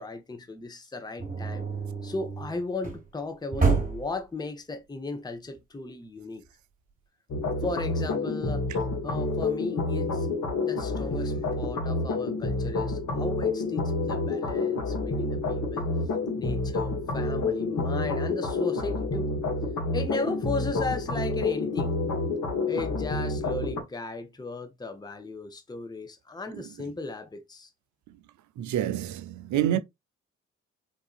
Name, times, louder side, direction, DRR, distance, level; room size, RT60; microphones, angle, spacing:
voice 1, 0.0-1.7 2.0-6.4 7.6-8.7 9.0-10.3 10.6-15.9 16.4-19.3 19.9-22.0 22.7-27.7, left 3 dB, 10° left, 0.8 m, -36 dB
sound 1, 1.2-3.1 3.5-4.2, right 4 dB, 25° right, 1.4 m, -28 dB
sound 2, 7.3-23.8, left 3 dB, 60° left, 1.2 m, -29 dB
voice 2, 28.6-29.8, right 11 dB, 60° right, 0.5 m, -27 dB
3.9 x 2.5 x 2.4 m
hypercardioid pair, 45°, 34 cm